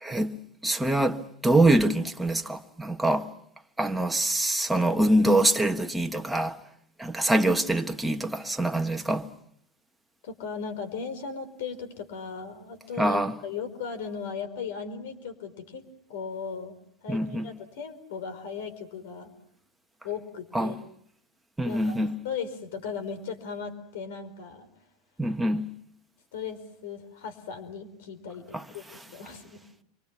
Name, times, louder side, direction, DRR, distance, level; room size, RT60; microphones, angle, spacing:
voice 1, 0.0-0.4 0.6-3.3 3.8-6.6 7.0-9.3 13.0-13.3 17.1-17.5 20.5-20.7 21.6-22.1 25.2-25.7 28.5-28.6, right 1 dB, 5° right, 1.5 m, -24 dB
voice 2, 10.2-15.8 16.1-19.3 20.0-20.8 21.6-24.7 26.3-28.4 28.7-29.8, left 6 dB, 70° left, 4.8 m, -37 dB
29.0 x 24.5 x 6.1 m
hypercardioid pair, 100°, 0 cm